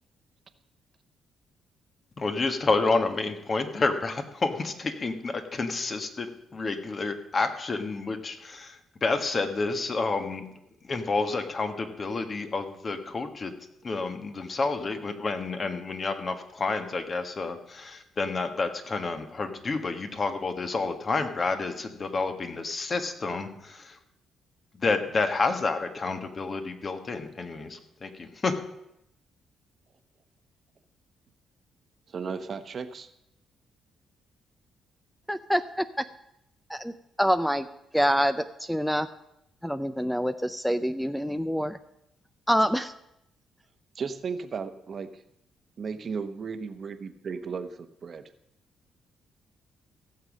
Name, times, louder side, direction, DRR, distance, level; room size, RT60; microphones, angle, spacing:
voice 1, 2.2-10.4 10.8-13.5 13.8-24.0 24.8-28.5, left 3 dB, 35° left, 7 dB, 1.6 m, -29 dB
voice 2, 32.1-33.1 43.9-45.2 45.8-48.2, right 5 dB, 50° right, 10 dB, 1.0 m, -35 dB
voice 3, 35.3-36.0 36.7-36.9 37.2-37.7 37.9-39.1 39.6-41.8 42.5-42.9, equal, ahead, 12 dB, 0.5 m, -26 dB
16.0 x 7.3 x 6.4 m, 0.81 s
cardioid pair, 90°, 0 cm